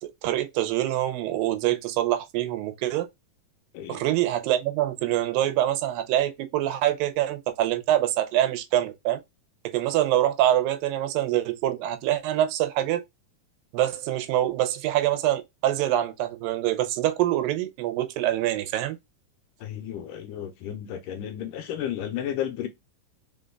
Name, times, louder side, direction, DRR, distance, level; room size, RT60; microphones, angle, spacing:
voice 1, 0.0-3.1 3.9-9.2 9.7-13.0 13.7-19.0, right 13 dB, 85° right, 2.4 m, -25 dB
voice 2, 19.6-22.7, left 10 dB, 80° left, 2.1 m, -33 dB
5.1 x 3.9 x 2.2 m
omnidirectional pair, 4.0 m